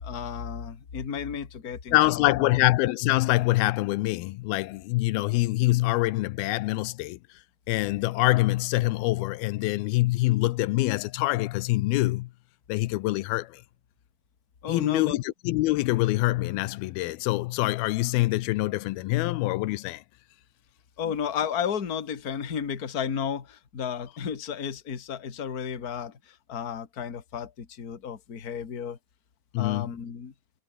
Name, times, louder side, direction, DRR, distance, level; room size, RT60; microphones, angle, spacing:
voice 1, 0.0-2.6 14.6-15.2 21.0-29.0 29.6-30.3, left 7 dB, 30° left, 1.9 m, -33 dB
voice 2, 1.9-7.2 7.7-12.3 12.7-13.6 14.7-20.0 29.5-29.9, left 19 dB, 85° left, 2.6 m, -25 dB
omnidirectional pair, 4.3 m